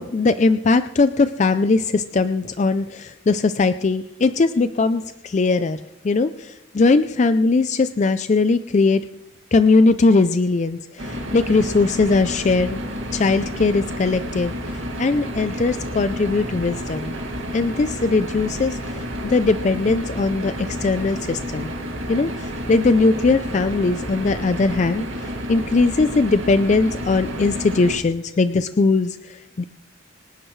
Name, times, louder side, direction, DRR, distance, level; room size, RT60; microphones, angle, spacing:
voice 1, 0.0-9.0 9.5-12.8 13.1-17.2 17.5-21.7 22.1-29.6, left 3 dB, 35° left, 11 dB, 0.4 m, -20 dB
sound 1, 11.0-28.0, equal, 70° right, 2.1 m, -30 dB
26.0 x 10.5 x 3.2 m, 0.93 s
head